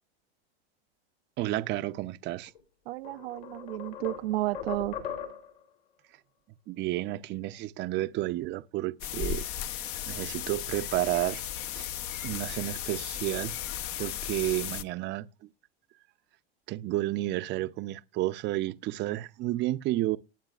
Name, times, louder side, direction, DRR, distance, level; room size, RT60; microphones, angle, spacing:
voice 1, 1.4-2.5 6.7-9.4 10.1-11.4 11.7-11.9 12.2-13.6 14.0-15.3 16.7-20.2, right 16 dB, 35° right, 0.6 m, -31 dB
sound 1, 2.5-2.6 3.0-5.6, left 7 dB, 75° left, 3.5 m, -39 dB
voice 2, 2.9-5.0, right 17 dB, 75° right, 0.6 m, -32 dB
sound 2, 9.0-14.8, left 11 dB, 45° left, 0.9 m, -35 dB
19.5 x 8.8 x 2.4 m
supercardioid pair, 125°, 31 cm